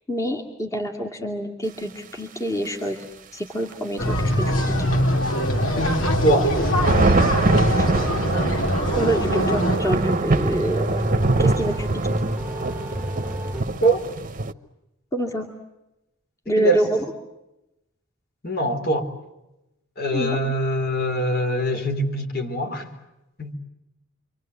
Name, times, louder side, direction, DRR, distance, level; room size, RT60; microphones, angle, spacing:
voice 1, 0.1-4.8 7.8-7.9 8.5-8.6 9.0-11.0 11.4-12.2 15.1-15.5 16.5-16.9 20.1-20.4, right 1 dB, 15° left, 1 dB, 2.5 m, -27 dB
sound 1, 3.7-3.8 4.5-4.6 6.4-14.5, right 2 dB, 40° right, 1.0 m, -23 dB
sound 2, 4.0-9.8, equal, 85° left, 4.1 m, -22 dB
voice 2, 5.8-6.9 13.8-14.0 16.6-16.9 18.4-19.1 20.0-22.9 23.4-23.5, right 1 dB, 50° left, 5 dB, 4.1 m, -23 dB
sound 3, 6.5-13.6, equal, 5° right, 1.6 m, -30 dB
28.5 x 25.0 x 8.2 m, 0.92 s
head